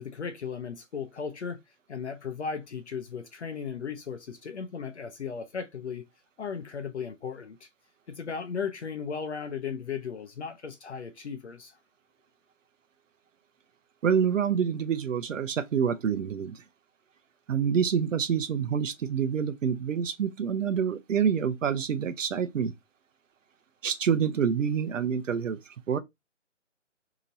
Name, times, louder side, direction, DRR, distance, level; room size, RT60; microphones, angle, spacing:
voice 1, 0.0-1.6 1.9-6.0 6.4-7.7 8.1-11.8, left 6 dB, 65° left, 0.7 m, -36 dB
voice 2, 14.0-16.6 17.5-22.7 23.8-26.0, right 7 dB, 85° right, 0.6 m, -27 dB
2.9 x 2.6 x 4.0 m
hypercardioid pair, 175°, 37 cm